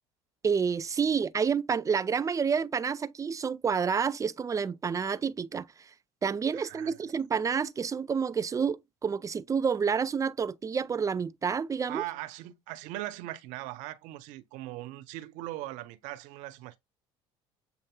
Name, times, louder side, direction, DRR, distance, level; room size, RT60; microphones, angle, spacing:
voice 1, 0.4-5.7 6.2-12.0, right 6 dB, 25° right, 0.5 m, -29 dB
voice 2, 6.5-7.0 11.9-16.8, right 16 dB, 70° right, 0.7 m, -40 dB
7.9 x 2.7 x 2.2 m
hypercardioid pair, 80°, 13 cm